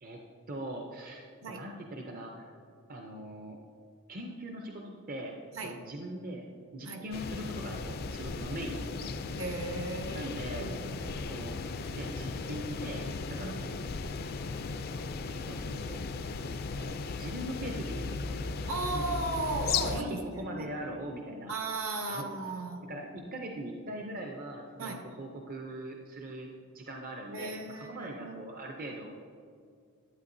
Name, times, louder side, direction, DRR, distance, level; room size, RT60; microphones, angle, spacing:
voice 1, 0.5-2.6 2.9-3.6 4.1-5.4 5.6-9.1 10.1-10.7 11.3-11.6 11.9-13.8 15.3-16.1 16.8-18.3 18.9-19.1 19.8-21.5 22.1-22.3 22.9-26.5 26.7-29.1, right 1 dB, 40° right, 1 dB, 0.6 m, -41 dB
sound 1, 7.1-20.0, left 4 dB, 45° left, 0.4 m, -36 dB
voice 2, 9.4-11.1 13.4-13.7 18.7-20.7 21.5-22.9 24.8-25.0 27.3-28.4, right 2 dB, 65° right, 3 dB, 1.0 m, -36 dB
11.0 x 8.7 x 2.6 m, 2.3 s
head